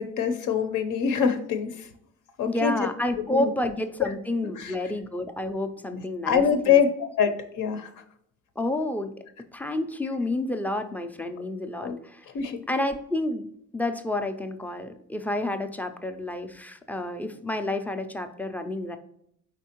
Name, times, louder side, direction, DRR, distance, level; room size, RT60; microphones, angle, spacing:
voice 1, 0.0-1.9 2.4-2.9 3.2-3.5 4.0-4.1 4.6-4.8 5.9-7.9 11.8-12.0 12.3-12.6, left 7 dB, 75° left, 7 dB, 0.7 m, -25 dB
voice 2, 2.5-6.8 8.6-9.1 9.5-12.2 12.7-13.5 13.7-19.0, left 1 dB, 5° left, 7 dB, 0.3 m, -30 dB
4.4 x 4.1 x 2.9 m, 0.72 s
cardioid pair, 130°, 31 cm